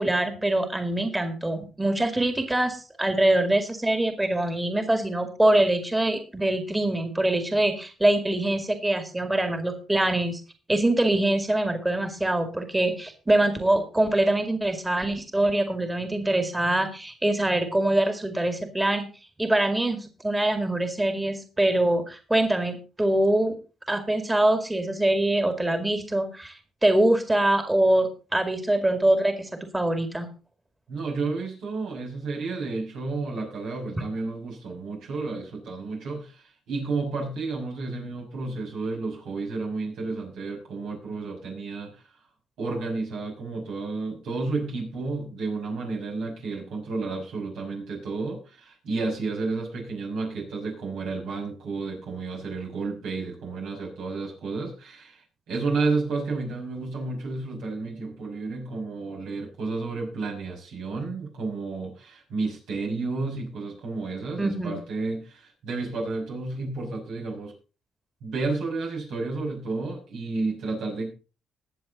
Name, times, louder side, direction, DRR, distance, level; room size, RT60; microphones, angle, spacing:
voice 1, 0.0-10.4 10.7-19.1 19.4-23.6 23.9-30.3 64.4-64.8, right 1 dB, 15° right, 7 dB, 2.1 m, -24 dB
voice 2, 30.9-42.1 42.6-67.5 68.2-71.1, right 3 dB, 85° right, -1 dB, 6.2 m, -31 dB
20.0 x 7.2 x 4.0 m, 0.34 s
cardioid pair, 90°, 0 cm